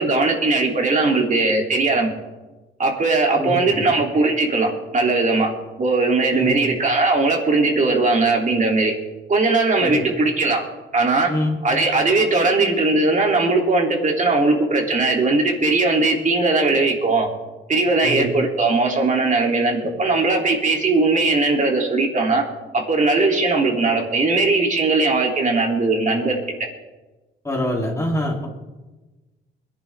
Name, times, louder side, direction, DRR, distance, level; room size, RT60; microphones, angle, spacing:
voice 1, 0.0-2.1 2.8-5.5 5.8-8.9 9.3-10.6 10.9-11.3 11.6-17.3 17.7-22.4 22.7-26.4, right 3 dB, 40° right, 0 dB, 3.3 m, -19 dB
voice 2, 3.4-3.9 6.3-6.6 9.8-10.1 11.3-11.6 18.0-18.3 27.4-28.5, left 1 dB, 15° left, -2 dB, 3.5 m, -24 dB
21.5 x 11.0 x 3.7 m, 1.1 s
cardioid pair, 90°, 20 cm